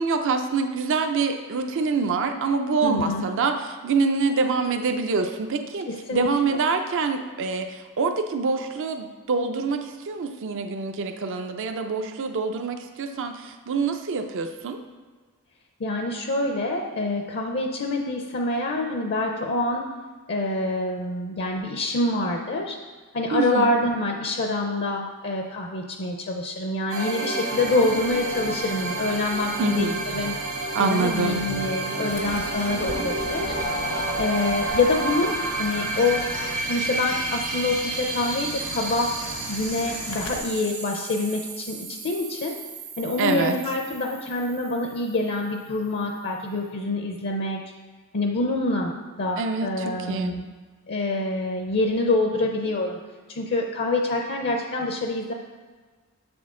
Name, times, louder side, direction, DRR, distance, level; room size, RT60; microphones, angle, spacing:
voice 1, 0.0-14.8 23.3-23.8 29.6-30.0 30.7-31.5 43.2-43.6 49.4-50.4, right 4 dB, 60° right, 6 dB, 0.5 m, -26 dB
voice 2, 2.8-3.3 5.9-6.3 15.8-19.8 20.3-22.8 23.1-30.4 30.8-33.5 34.2-36.2 36.6-39.1 39.5-42.6 43.0-47.6 48.1-50.5 50.9-53.0 53.3-55.3, left 2 dB, 50° left, 3 dB, 0.6 m, -26 dB
sound 1, 26.9-45.4, right 2 dB, 80° right, 1.6 m, -31 dB
Fowl / Bird, 32.1-40.4, left 2 dB, 75° left, 1.1 m, -37 dB
6.7 x 6.1 x 3.7 m, 1.4 s
head